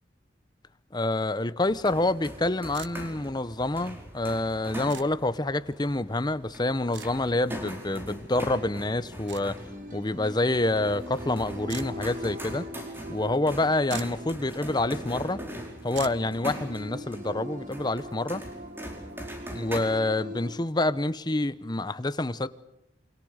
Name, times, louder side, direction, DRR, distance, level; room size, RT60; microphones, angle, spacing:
voice 1, 0.9-9.6 9.9-12.7 13.1-15.4 15.8-18.4 19.5-22.5, left 2 dB, 25° left, 0.9 m, -27 dB
sound 1, 1.6-19.8, equal, 15° right, 4.9 m, -41 dB
sound 2, 2.7-2.9 4.9-5.1 6.9-7.1 9.3-9.5 11.7-11.9 13.5-13.6 13.9-14.2 16.0-16.2, right 10 dB, 75° right, 1.2 m, -40 dB
sound 3, 6.6-20.6, equal, 45° right, 3.9 m, -42 dB
28.5 x 25.0 x 6.6 m
head